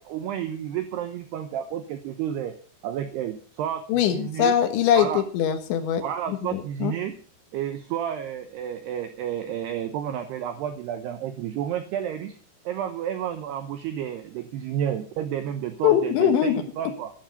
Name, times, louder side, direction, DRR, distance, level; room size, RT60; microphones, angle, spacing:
voice 1, 0.0-2.6 2.8-4.5 4.9-5.2 6.0-7.2 7.5-12.4 12.7-17.1, right 10 dB, 80° right, 8 dB, 2.4 m, -31 dB
voice 2, 3.9-6.0 6.3-6.9 15.8-16.6, left 9 dB, 70° left, 8 dB, 3.4 m, -22 dB
12.0 x 12.0 x 5.2 m, 0.42 s
omnidirectional pair, 5.9 m